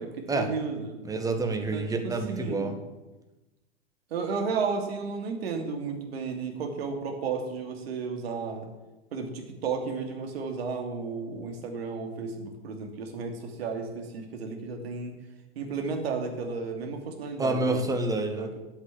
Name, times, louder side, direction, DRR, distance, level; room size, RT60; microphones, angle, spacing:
voice 1, 0.0-1.0 1.7-2.8 4.1-8.7 9.1-15.1 15.5-17.9 18.3-18.6, right 5 dB, 60° right, 4 dB, 2.7 m, -33 dB
voice 2, 1.0-2.7 17.4-18.5, right 2 dB, 10° right, 5 dB, 1.5 m, -28 dB
8.5 x 8.1 x 8.8 m, 1.1 s
figure-of-eight pair, 110°, 34 cm